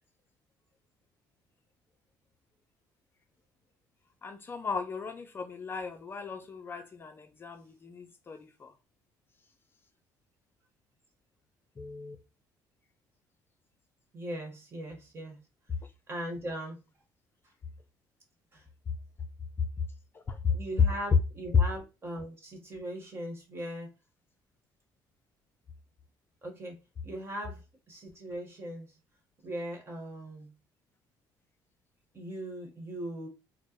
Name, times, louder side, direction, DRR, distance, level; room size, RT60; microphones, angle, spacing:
voice 1, 4.2-8.7 11.8-12.2 20.1-20.6, left 5 dB, 30° left, 0.4 m, -37 dB
voice 2, 14.1-15.4 16.1-16.8 18.5-18.6 20.5-23.9 26.4-27.6 27.9-28.9 29.4-30.5 32.1-33.3, right 1 dB, 30° right, 1.3 m, -39 dB
4.4 x 2.1 x 3.0 m
cardioid pair, 120°, 8 cm